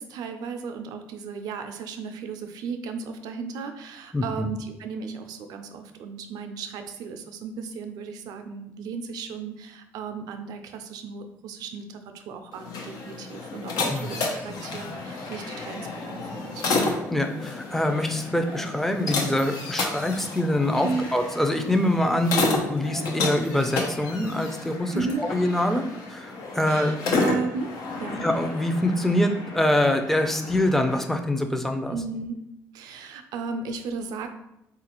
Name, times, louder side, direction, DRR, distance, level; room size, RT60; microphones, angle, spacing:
voice 1, 0.0-16.6 20.8-21.1 24.9-25.2 26.7-27.7 28.0-28.2 31.9-32.4 32.7-34.3, right 5 dB, 80° right, 7 dB, 0.4 m, -35 dB
voice 2, 4.1-4.5 13.9-14.1 17.1-25.8 26.1-26.9 28.2-32.0, left 1 dB, 5° left, 5 dB, 0.4 m, -24 dB
sound 1, 12.5-31.0, left 3 dB, 80° left, 0.6 m, -31 dB
4.0 x 2.4 x 2.9 m, 0.83 s
cardioid pair, 80°, 7 cm